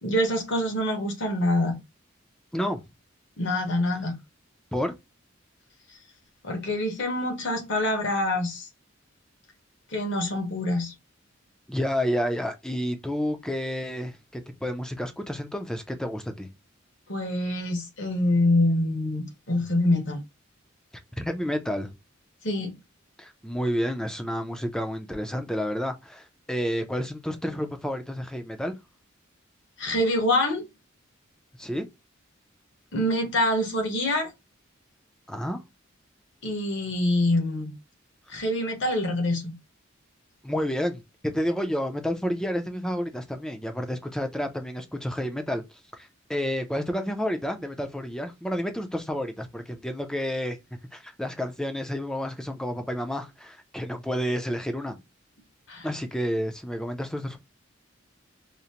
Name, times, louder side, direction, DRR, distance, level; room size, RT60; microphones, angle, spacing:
voice 1, 0.0-1.8 3.4-4.2 6.4-8.7 9.9-10.9 17.1-20.2 22.4-22.7 29.8-30.6 32.9-34.3 36.4-37.7 38.3-39.6 55.7-55.9, left 1 dB, 60° left, 1.0 m, -25 dB
voice 2, 2.5-2.8 4.7-4.9 11.7-16.5 21.2-21.9 23.2-28.8 31.6-31.9 35.3-35.6 40.4-45.6 46.0-50.6 50.9-55.0 55.8-57.4, equal, 5° left, 0.4 m, -30 dB
5.0 x 2.1 x 2.8 m
head